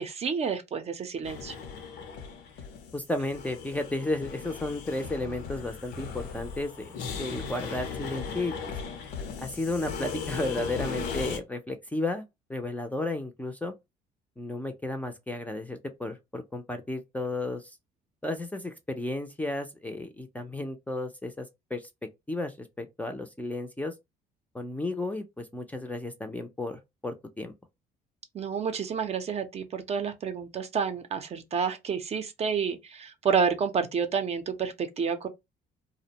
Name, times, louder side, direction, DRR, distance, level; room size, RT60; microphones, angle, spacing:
voice 1, 0.0-1.5 28.3-35.3, right 6 dB, 40° right, 0.5 m, -29 dB
sound 1, 1.2-11.4, left 6 dB, 80° left, 0.7 m, -37 dB
voice 2, 2.9-8.5 9.4-12.2 12.5-13.7 14.4-17.7 18.2-21.9 22.3-23.9 24.5-27.5, left 2 dB, 10° left, 0.4 m, -33 dB
2.4 x 2.1 x 2.8 m
cardioid pair, 110°, 17 cm